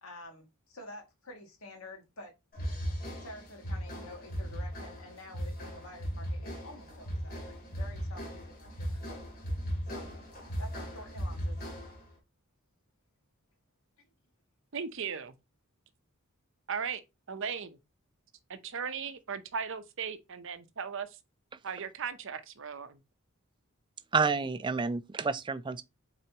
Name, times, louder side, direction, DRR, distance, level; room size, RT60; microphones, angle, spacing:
voice 1, 0.0-2.3 3.2-9.2 9.9-10.1 10.6-11.5, left 1 dB, 80° left, 2.2 m, -49 dB
sound 1, 2.5-12.1, equal, 45° left, 2.5 m, -37 dB
voice 2, 14.7-15.3 16.7-17.0 17.3-17.8 18.5-21.1 21.6-23.0, right 6 dB, 60° right, 0.8 m, -37 dB
voice 3, 24.1-25.8, right 4 dB, 20° right, 0.3 m, -29 dB
7.7 x 4.2 x 2.9 m
head